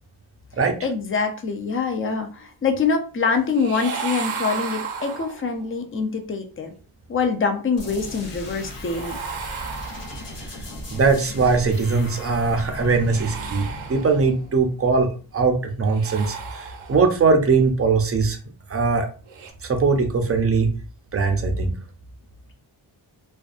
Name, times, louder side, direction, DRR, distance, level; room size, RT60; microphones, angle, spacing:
voice 1, 0.8-6.7 7.1-9.2, left 5 dB, 30° left, 6 dB, 0.4 m, -24 dB
sound 1, 3.5-5.7 8.9-10.5 12.9-14.5 15.8-17.2 19.2-19.5, right 6 dB, 75° right, 0.7 m, -34 dB
sound 2, 7.8-15.3, left 1 dB, 60° left, 0.9 m, -37 dB
voice 2, 10.9-18.4 18.7-19.1 19.6-20.7 21.1-21.7, right 4 dB, 30° right, 5 dB, 0.5 m, -21 dB
2.6 x 2.2 x 2.4 m, 0.37 s
wide cardioid pair, 95°, 49 cm